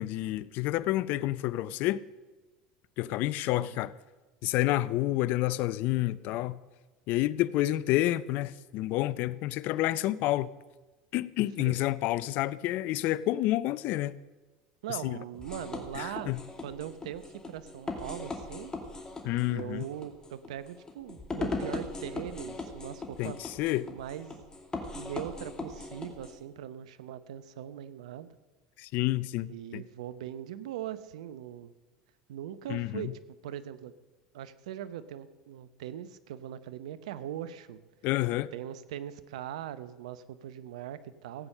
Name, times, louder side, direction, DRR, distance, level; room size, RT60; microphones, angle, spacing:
voice 1, 0.0-2.0 3.0-3.9 4.4-6.6 7.1-10.5 11.1-14.1 15.0-15.2 15.9-16.4 19.2-19.8 23.2-23.3 23.6-23.9 28.8-29.8 32.7-33.1 38.0-38.5, left 16 dB, 60° left, 0.5 m, -29 dB
voice 2, 14.8-16.4 16.6-18.7 19.5-23.4 23.8-24.4 24.9-28.3 29.5-31.7 32.3-33.9 34.3-37.8 38.5-41.5, right 11 dB, 80° right, 0.8 m, -40 dB
sound 1, 15.3-26.4, left 3 dB, 20° left, 2.5 m, -39 dB
16.0 x 8.8 x 6.6 m
hypercardioid pair, 85°, 3 cm